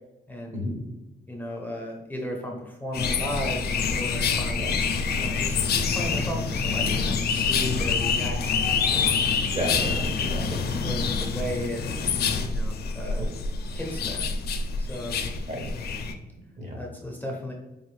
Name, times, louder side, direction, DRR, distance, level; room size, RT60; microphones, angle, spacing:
voice 1, 0.3-0.6 1.3-4.6 5.1-9.2 9.9-10.0 10.8-11.9 12.4-13.3 13.7-14.3 14.8-15.2 16.8-17.5, equal, 10° left, -1 dB, 0.6 m, -35 dB
sound 1, 2.9-16.1, left 5 dB, 70° left, 0.5 m, -26 dB
voice 2, 9.4-10.7 13.2-13.3 15.5-15.6 16.6-16.8, equal, 45° right, 1 dB, 1.2 m, -32 dB
4.9 x 2.5 x 3.1 m, 1.0 s
cardioid pair, 130°, 17 cm